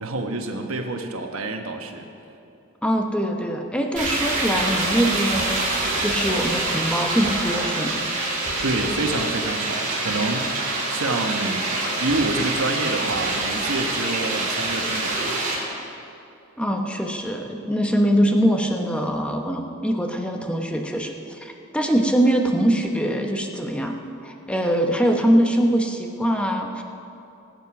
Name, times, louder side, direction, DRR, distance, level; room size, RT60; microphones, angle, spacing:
voice 1, 0.0-2.1 8.3-15.4, right 2 dB, 80° right, 4 dB, 1.2 m, -28 dB
voice 2, 2.8-8.0 16.6-26.8, equal, 5° left, 3 dB, 0.9 m, -23 dB
sound 1, 4.0-15.6, right 2 dB, 40° right, 3.4 m, -25 dB
19.0 x 8.0 x 5.9 m, 2.7 s
head